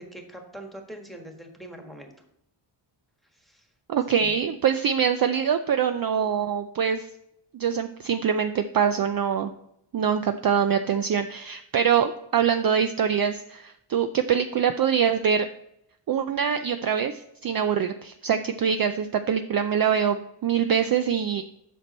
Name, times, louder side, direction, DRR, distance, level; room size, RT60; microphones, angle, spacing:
voice 1, 0.0-2.1 3.3-3.7 4.2-4.5, right 1 dB, ahead, 3 dB, 1.5 m, -43 dB
voice 2, 3.9-7.1 7.5-9.5 9.9-15.5 16.1-21.4, right 7 dB, 45° right, 9 dB, 0.5 m, -24 dB
8.1 x 6.1 x 4.2 m, 0.78 s
wide cardioid pair, 100°, 49 cm